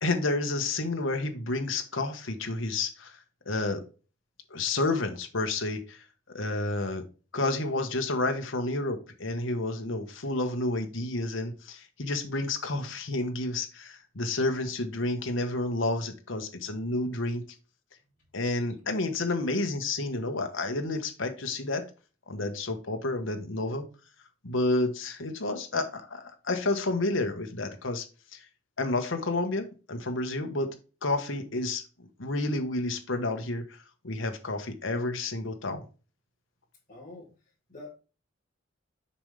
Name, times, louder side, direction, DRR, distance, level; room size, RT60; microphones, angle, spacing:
voice 1, 0.0-3.2 3.5-3.8 4.5-6.0 6.3-7.0 7.3-17.4 18.3-21.8 22.3-23.8 24.4-28.0 28.3-28.4 28.8-30.7 31.0-33.6 34.0-35.8, left 2 dB, 80° left, 1.3 m, -30 dB
voice 2, 36.9-37.3 37.7-37.9, left 2 dB, 35° left, 3.2 m, -45 dB
7.1 x 5.4 x 3.3 m
head